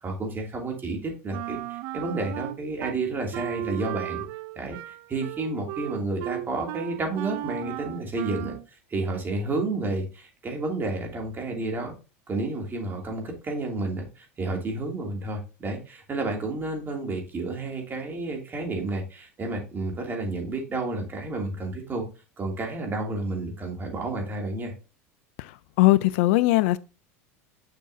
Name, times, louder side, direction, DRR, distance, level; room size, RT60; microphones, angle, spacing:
voice 1, 0.0-4.2 4.6-8.5 8.9-11.9 12.3-22.0 22.4-24.7, right 2 dB, 25° right, 2.7 m, -31 dB
Wind instrument woodwind instrument, 1.3-3.0 3.3-8.7, right 15 dB, 60° right, 0.5 m, -35 dB
voice 2, 25.8-26.8, left 18 dB, 65° left, 0.4 m, -19 dB
6.7 x 6.2 x 2.8 m
hypercardioid pair, 95°, 7 cm